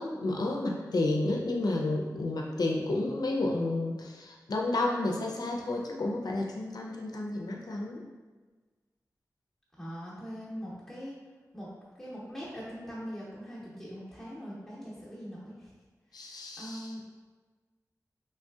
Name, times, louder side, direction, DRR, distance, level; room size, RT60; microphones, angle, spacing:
voice 1, 0.0-8.0 16.1-16.9, left 2 dB, 75° left, -1 dB, 0.4 m, -31 dB
voice 2, 9.7-11.2 11.5-11.7 12.0-15.7 16.1-17.0, equal, 5° left, -9 dB, 0.7 m, -42 dB
3.2 x 2.7 x 2.3 m, 1.4 s
wide cardioid pair, 60°, 7 cm